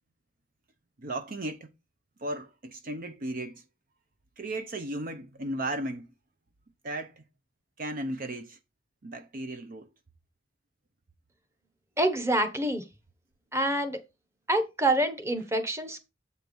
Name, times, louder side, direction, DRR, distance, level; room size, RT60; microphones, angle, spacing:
voice 1, 1.0-1.7 2.2-3.6 4.4-6.1 6.8-7.2 7.8-8.6 9.0-9.9, right 1 dB, 50° right, 0.7 m, -35 dB
voice 2, 12.0-12.8 13.5-14.0 14.5-16.0, right 1 dB, 15° right, 1.2 m, -26 dB
8.0 x 4.6 x 5.3 m
head